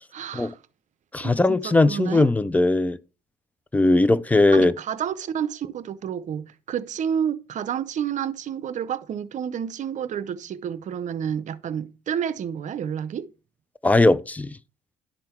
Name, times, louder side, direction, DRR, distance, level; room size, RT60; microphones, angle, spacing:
voice 1, 0.1-0.6 1.2-2.3 4.5-13.3, right 8 dB, 45° right, 0.6 m, -30 dB
voice 2, 1.1-3.0 3.7-4.7 13.8-14.6, left 2 dB, 10° left, 0.4 m, -19 dB
11.0 x 3.8 x 4.4 m
cardioid pair, 110°, 17 cm